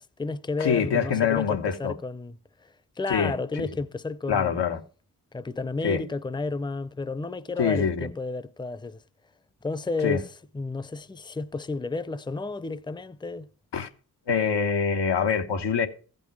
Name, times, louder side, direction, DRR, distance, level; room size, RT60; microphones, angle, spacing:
voice 1, 0.0-4.6 5.3-9.0 9.6-13.5, left 3 dB, 10° left, 0.6 m, -32 dB
voice 2, 0.6-1.9 3.1-3.3 3.6-3.7 4.3-4.8 5.8-6.0 7.6-8.1 10.0-10.2 13.7-13.9 14.3-15.9, left 6 dB, 90° left, 1.2 m, -24 dB
14.5 x 5.4 x 6.0 m
cardioid pair, 45°, 40 cm